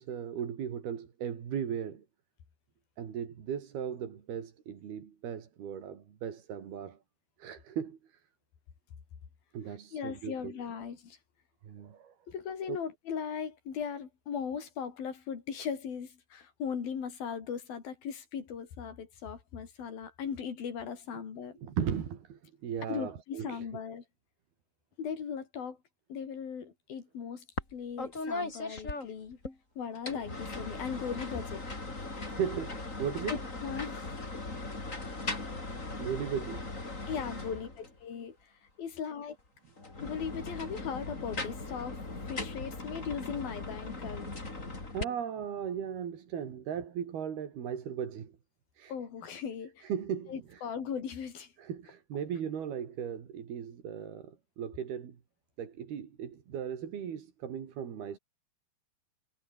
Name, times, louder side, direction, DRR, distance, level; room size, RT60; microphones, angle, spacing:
voice 1, 0.0-2.0 3.0-7.0 7.4-8.2 9.5-10.5 11.6-12.1 12.7-12.8 21.1-21.2 21.6-23.6 32.3-33.3 36.0-36.7 44.6-48.3 48.8-48.9 49.8-50.6 51.6-55.2 55.6-58.2, right 8 dB, 90° right, 5.0 m, -37 dB
voice 2, 9.9-11.2 12.3-21.6 22.8-24.0 25.0-25.8 26.1-27.5 27.7-29.4 29.8-31.7 33.3-34.2 37.1-38.5 38.8-39.4 40.0-42.0 42.3-44.3 48.9-49.9 50.3-51.5, left 7 dB, 70° left, 5.3 m, -38 dB
sound 1, 27.6-27.7 28.0-29.5 29.9-38.0 39.8-45.0, left 2 dB, 20° left, 4.4 m, -39 dB
omnidirectional pair, 4.3 m